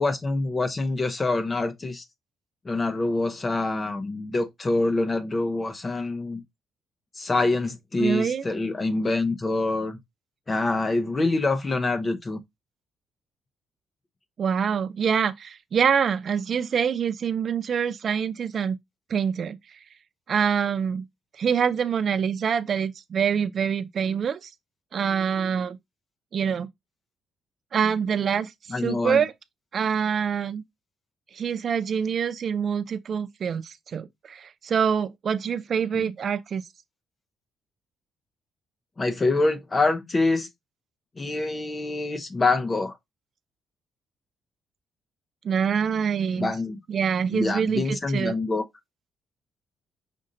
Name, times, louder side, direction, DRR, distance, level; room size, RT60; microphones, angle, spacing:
voice 1, 0.0-2.0 2.7-6.4 7.2-10.0 10.5-12.4 28.7-29.2 35.9-36.1 39.0-40.5 41.2-42.9 46.4-46.8 47.3-48.6, left 3 dB, 30° left, 0.6 m, -25 dB
voice 2, 8.0-8.5 14.4-18.8 19.1-19.8 20.3-21.0 21.4-24.5 24.9-25.8 26.3-26.7 27.7-28.5 28.8-29.3 29.7-30.6 31.3-36.6 45.4-46.5 46.9-48.4, right 7 dB, 50° right, 0.3 m, -25 dB
5.2 x 2.5 x 3.8 m
cardioid pair, 90°, 0 cm